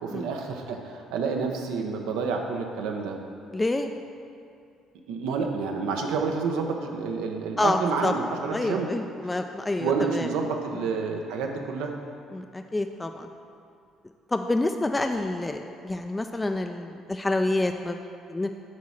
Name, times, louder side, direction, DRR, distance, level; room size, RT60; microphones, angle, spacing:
voice 1, 0.0-3.2 5.1-8.9 9.8-11.9, right 5 dB, 90° right, 2 dB, 0.8 m, -29 dB
voice 2, 3.5-3.9 7.6-8.1 8.5-10.3 12.3-13.3 14.3-18.0 18.3-18.5, left 2 dB, 15° left, 5 dB, 0.3 m, -27 dB
7.5 x 4.2 x 6.3 m, 2.4 s
cardioid pair, 100°, 0 cm